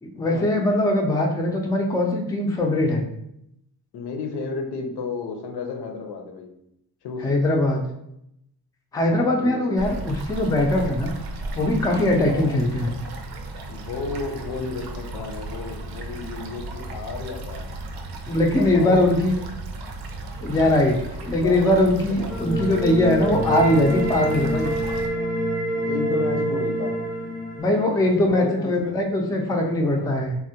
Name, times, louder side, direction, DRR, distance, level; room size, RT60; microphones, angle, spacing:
voice 1, 0.0-3.0 7.2-7.9 8.9-11.1 11.5-12.9 18.3-19.3 20.4-21.0 21.3-24.8 27.6-30.4, left 1 dB, 10° left, 1 dB, 0.3 m, -21 dB
voice 2, 3.9-6.5 7.0-7.3 9.0-9.8 12.3-12.6 13.7-17.7 18.4-19.0 20.4-22.8 25.1-25.2 25.9-27.0 27.9-29.0, left 4 dB, 85° left, 3 dB, 0.6 m, -33 dB
sound 1, 9.8-25.1, right 2 dB, 75° right, 0.5 m, -35 dB
sound 2, 22.3-28.3, right 1 dB, 5° right, 0.7 m, -27 dB
3.4 x 2.1 x 2.7 m, 0.79 s
wide cardioid pair, 130°, 38 cm